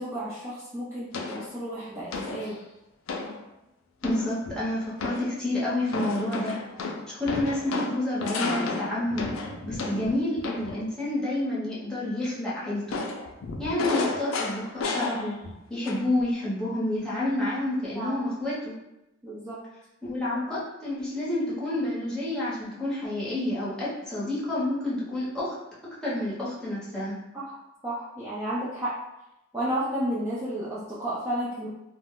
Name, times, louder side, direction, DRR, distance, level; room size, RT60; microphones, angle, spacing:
voice 1, 0.0-2.6 17.9-18.1 19.2-19.6 27.3-27.6 27.8-29.0 29.5-31.7, right 1 dB, 10° right, -10 dB, 0.5 m, -32 dB
sound 1, 1.1-1.5 2.1-2.5 3.1-3.4 4.0-4.6 5.0-5.4 5.9-10.8 12.9-15.6 15.9-16.2, left 3 dB, 80° left, 0.4 m, -32 dB
voice 2, 4.0-6.6 7.2-9.3 9.6-13.0 13.6-15.4 15.7-18.7 20.0-25.5 26.0-27.2, left 1 dB, 5° left, -9 dB, 0.9 m, -29 dB
2.4 x 2.1 x 3.6 m, 0.91 s
head